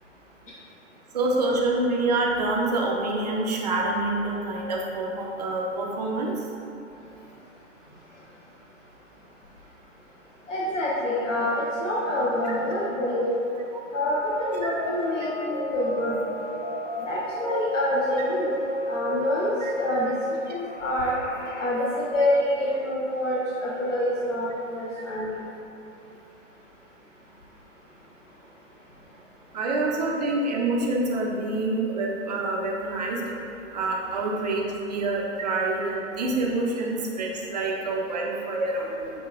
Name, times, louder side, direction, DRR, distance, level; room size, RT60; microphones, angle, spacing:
voice 1, 1.1-6.3 19.6-19.7 29.5-33.2 33.7-39.1, right 2 dB, 35° right, -2 dB, 0.4 m, -26 dB
voice 2, 10.5-13.3 13.9-16.2 17.0-18.6 18.9-20.1 20.5-21.1 21.6-25.4, left 1 dB, 70° left, -6 dB, 0.7 m, -26 dB
sound 1, 14.0-21.7, left 1 dB, 35° left, 0.4 m, -33 dB
6.6 x 2.2 x 2.4 m, 2.8 s
figure-of-eight pair, 115°, 39 cm